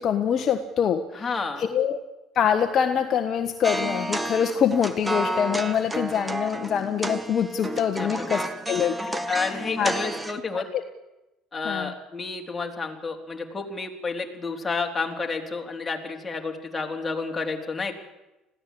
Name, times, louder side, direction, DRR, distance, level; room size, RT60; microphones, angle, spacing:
voice 1, 0.0-1.2 1.6-2.0 2.3-9.2 9.8-9.9 10.5-10.8 11.6-11.9, left 8 dB, 50° left, 7 dB, 1.4 m, -25 dB
voice 2, 1.1-1.6 8.0-8.4 9.3-10.7 11.5-17.9, left 4 dB, 20° left, 1 dB, 4.0 m, -30 dB
sound 1, 3.6-10.4, right 1 dB, 15° right, 1.7 m, -31 dB
21.0 x 16.0 x 8.6 m, 1.0 s
hypercardioid pair, 70°, 0 cm